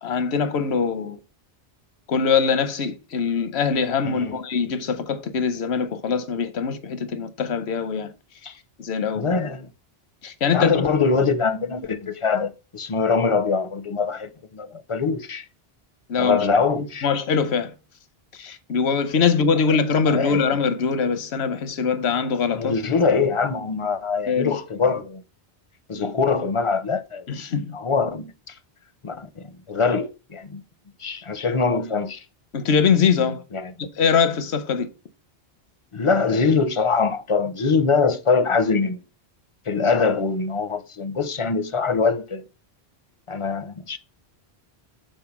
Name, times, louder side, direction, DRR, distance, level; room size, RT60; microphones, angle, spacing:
voice 1, 0.0-1.2 2.1-8.1 8.8-9.3 10.2-10.8 16.1-16.4 16.8-17.7 18.4-22.7 24.3-24.6 27.3-27.8 32.5-33.4 34.0-34.9, left 6 dB, 85° left, 1.1 m, -22 dB
voice 2, 4.0-4.4 8.4-8.5 9.2-9.7 10.5-15.4 16.2-17.1 20.1-20.4 22.5-25.2 25.9-28.6 29.0-30.6 31.0-32.2 33.5-33.9 35.9-39.0 39.7-42.4 43.3-44.0, left 4 dB, 40° left, 0.5 m, -23 dB
5.4 x 4.5 x 5.9 m
omnidirectional pair, 1.1 m